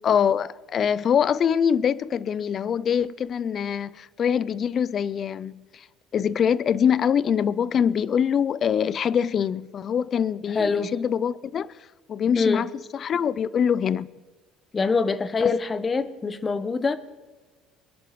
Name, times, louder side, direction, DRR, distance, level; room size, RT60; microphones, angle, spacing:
voice 1, 0.0-5.9 6.1-11.7 12.1-14.1 15.4-15.5, left 8 dB, 50° left, 0.5 m, -24 dB
voice 2, 10.5-10.9 12.4-12.6 14.7-17.0, left 4 dB, 30° left, 0.9 m, -24 dB
22.0 x 11.0 x 3.2 m
supercardioid pair, 75°, 0 cm